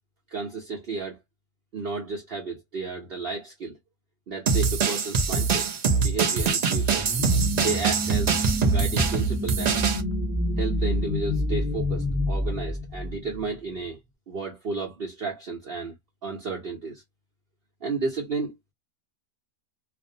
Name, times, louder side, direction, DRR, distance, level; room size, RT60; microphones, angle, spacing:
voice 1, 0.3-1.2 1.7-3.8 4.3-7.1 7.6-8.3 8.6-9.8 10.6-14.0 14.3-15.9 16.2-17.0 17.8-18.6, right 4 dB, 50° right, 0.8 m, -32 dB
sound 1, 4.5-10.0, right 5 dB, 90° right, 0.3 m, -24 dB
sound 2, 6.9-13.4, left 1 dB, 15° right, 0.6 m, -28 dB
2.5 x 2.0 x 2.6 m
omnidirectional pair, 1.5 m